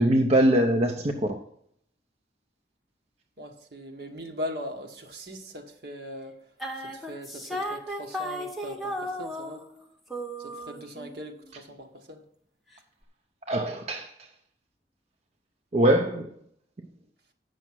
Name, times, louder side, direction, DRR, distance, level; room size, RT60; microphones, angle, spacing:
voice 1, 0.0-1.4 13.5-14.1 15.7-16.3, right 1 dB, 35° right, 0.6 m, -22 dB
voice 2, 3.4-6.3 6.8-9.7 10.4-12.2, equal, 65° right, 1.4 m, -40 dB
sound 1, 6.6-9.8 10.1-11.2, equal, ahead, 1.0 m, -35 dB
8.4 x 6.3 x 6.1 m
head